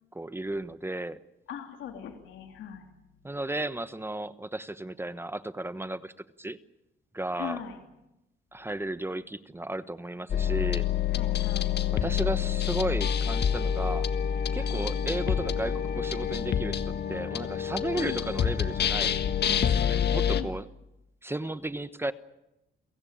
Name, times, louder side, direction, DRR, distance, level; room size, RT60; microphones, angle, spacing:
voice 1, 0.1-1.2 3.2-6.1 6.4-6.6 7.1-7.6 8.5-10.9 11.9-14.1 14.5-19.2 19.6-20.7 21.2-22.1, right 1 dB, 10° right, 13 dB, 1.1 m, -34 dB
voice 2, 1.5-2.9 7.4-7.8 11.1-11.8 17.9-18.2 20.3-20.5, left 9 dB, 80° left, 4 dB, 3.1 m, -39 dB
sound 1, 10.3-20.4, left 8 dB, 55° left, 1.5 m, -27 dB
29.5 x 17.0 x 8.9 m, 0.95 s
cardioid pair, 90°, 20 cm